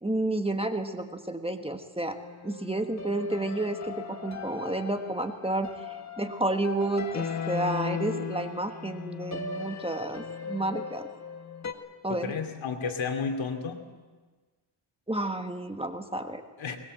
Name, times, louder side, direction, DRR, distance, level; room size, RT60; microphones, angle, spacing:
voice 1, 0.0-2.2 2.4-11.1 12.0-12.3 15.1-16.4, right 2 dB, 10° right, 6 dB, 1.5 m, -31 dB
sound 1, 2.2-11.7, left 5 dB, 35° left, 1.9 m, -37 dB
voice 2, 12.1-13.9 16.6-16.8, left 5 dB, 70° left, 5 dB, 2.7 m, -32 dB
22.0 x 20.5 x 7.8 m, 1.3 s
cardioid pair, 105°, 48 cm